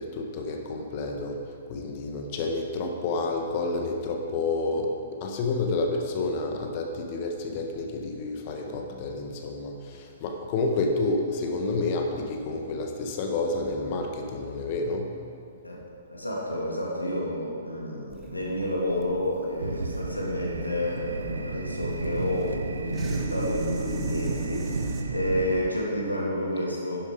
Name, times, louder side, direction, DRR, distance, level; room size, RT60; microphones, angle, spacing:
voice 1, 0.0-15.2, left 3 dB, 40° left, 3 dB, 1.3 m, -29 dB
voice 2, 16.1-27.0, left 1 dB, 90° left, -3 dB, 2.8 m, -30 dB
sound 1, 18.1-25.0, right 4 dB, 20° right, 1.3 m, -42 dB
sound 2, 19.6-25.6, right 3 dB, 70° right, 0.8 m, -32 dB
10.5 x 10.0 x 5.1 m, 2.4 s
figure-of-eight pair, 115°, 0 cm